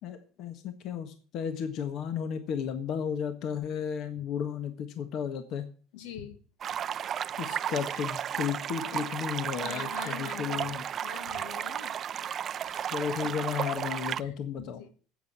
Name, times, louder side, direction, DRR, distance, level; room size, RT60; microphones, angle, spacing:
voice 1, 0.0-5.6 7.4-10.8 12.9-14.8, left 8 dB, 55° left, 9 dB, 1.5 m, -34 dB
voice 2, 5.9-6.4 8.9-9.2 9.5-11.9 12.6-13.6 13.9-14.9, left 8 dB, 80° left, 9 dB, 2.1 m, -45 dB
sound 1, 6.6-14.2, right 9 dB, 35° right, 0.5 m, -34 dB
10.5 x 8.5 x 7.4 m, 0.41 s
cardioid pair, 130°, 0 cm